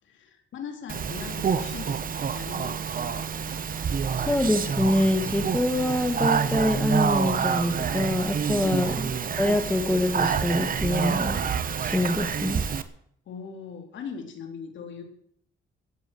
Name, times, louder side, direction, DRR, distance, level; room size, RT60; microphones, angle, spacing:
voice 1, 0.0-3.3 13.3-15.0, left 6 dB, 70° left, 4 dB, 3.7 m, -40 dB
Speech, 0.9-12.8, right 7 dB, 45° right, 1.3 m, -27 dB
voice 2, 4.2-8.9 9.4-11.4 11.8-12.6, left 1 dB, 5° left, 6 dB, 1.9 m, -25 dB
16.0 x 8.9 x 7.9 m, 0.67 s
cardioid pair, 90°, 20 cm